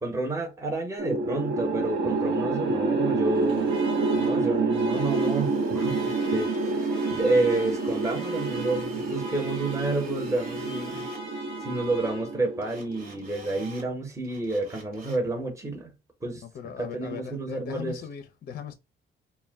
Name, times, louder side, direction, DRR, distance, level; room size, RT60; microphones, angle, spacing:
voice 1, 0.0-3.7 4.1-6.8 7.1-11.1 11.6-15.9 16.2-16.4 16.8-18.0, right 2 dB, 15° right, 0.8 m, -29 dB
sound 1, 1.0-13.3, right 3 dB, 65° right, 0.6 m, -28 dB
Alarm, 3.2-12.7, right 2 dB, 80° right, 1.2 m, -43 dB
Drill, 4.9-11.2 12.6-13.9 14.2-15.3, right 3 dB, 45° right, 1.0 m, -48 dB
voice 2, 16.4-18.7, left 8 dB, 50° left, 0.4 m, -39 dB
2.2 x 2.1 x 3.3 m
cardioid pair, 90°, 20 cm